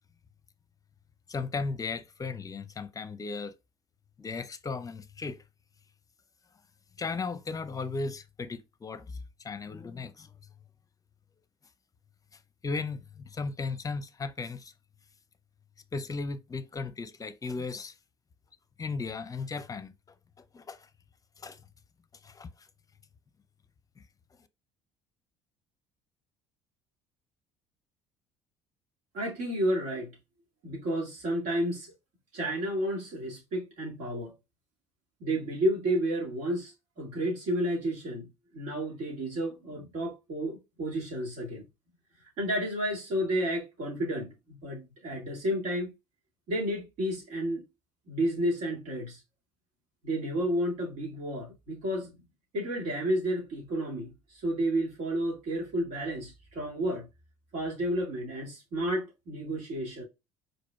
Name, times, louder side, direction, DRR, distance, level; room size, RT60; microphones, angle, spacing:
voice 1, 1.3-3.5 4.2-5.4 7.0-9.2 9.4-10.3 12.6-14.7 15.9-17.9 18.8-19.9 20.5-20.9 21.4-21.6 22.2-22.5, left 4 dB, 25° left, 0.7 m, -36 dB
voice 2, 29.1-30.1 30.6-31.9 32.3-34.3 35.2-38.3 38.5-41.6 42.4-45.9 46.5-47.6 48.1-49.2 50.0-52.1 52.5-54.1 54.4-57.1 57.5-60.0, right 1 dB, 60° right, 2.2 m, -31 dB
4.9 x 4.0 x 2.3 m
hypercardioid pair, 60°, 14 cm